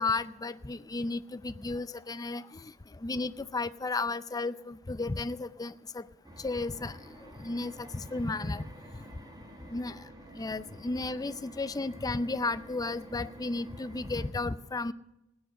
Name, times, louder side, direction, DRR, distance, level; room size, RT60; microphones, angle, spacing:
voice 1, 0.0-2.7 3.0-6.0 6.4-8.6 9.7-10.0 10.4-14.9, left 3 dB, 15° left, 14 dB, 0.4 m, -33 dB
sound 1, 6.2-14.3, right 1 dB, 20° right, 1.8 m, -50 dB
16.0 x 10.0 x 6.3 m, 0.90 s
head